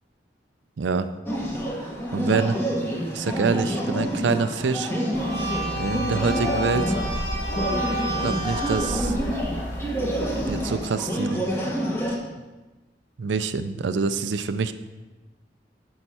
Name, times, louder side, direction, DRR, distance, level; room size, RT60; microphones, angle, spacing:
voice 1, 0.8-1.1 2.1-2.6 3.1-4.9 5.8-7.0 8.2-9.2 10.0-10.1 10.5-11.5 13.2-14.7, right 5 dB, 80° right, 11 dB, 0.4 m, -26 dB
sound 1, 1.3-12.2, equal, 15° left, 1.1 m, -28 dB
sound 2, 5.1-10.6, right 1 dB, 80° left, 3.3 m, -30 dB
9.0 x 6.4 x 4.2 m, 1.2 s
head